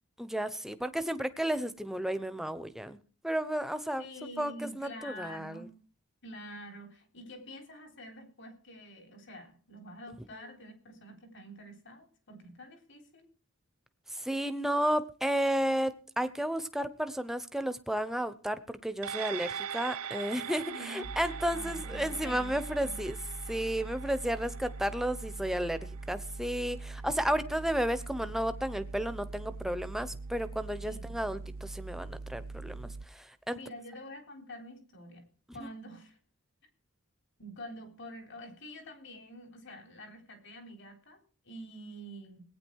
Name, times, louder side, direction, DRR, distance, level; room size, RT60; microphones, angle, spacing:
voice 1, 0.2-3.0 3.2-4.1 4.4-5.7 14.1-23.2 23.5-33.6 35.6-35.7, equal, ahead, 11 dB, 0.8 m, -33 dB
voice 2, 4.0-5.7 6.2-13.3 20.7-21.1 21.5-22.6 22.8-23.0 30.9-31.2 33.5-35.3 35.5-36.2 37.4-41.2 41.4-42.4, equal, 55° left, 5 dB, 3.7 m, -47 dB
sound 1, 19.0-27.7 28.1-28.2, right 8 dB, 80° right, 0.7 m, -43 dB
sound 2, 21.0-33.1, right 3 dB, 40° right, 0.6 m, -42 dB
18.5 x 9.5 x 4.6 m, 0.42 s
head